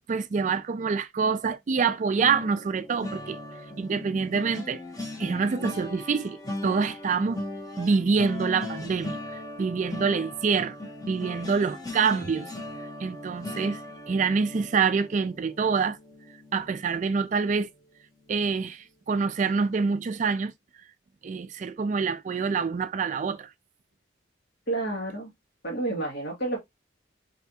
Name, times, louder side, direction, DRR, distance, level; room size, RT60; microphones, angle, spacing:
voice 1, 0.1-3.4 3.8-4.8 5.2-7.4 7.8-9.2 9.6-10.7 11.1-12.5 13.0-13.8 14.1-16.0 16.5-17.7 18.3-20.5 21.2-23.5, right 5 dB, 40° right, 0.3 m, -26 dB
sound 1, 2.2-17.3 17.7-18.0 18.3-18.5, left 2 dB, 20° left, 1.1 m, -39 dB
voice 2, 24.7-25.3 25.6-26.6, right 2 dB, 55° left, 2.3 m, -30 dB
4.1 x 3.4 x 2.7 m
head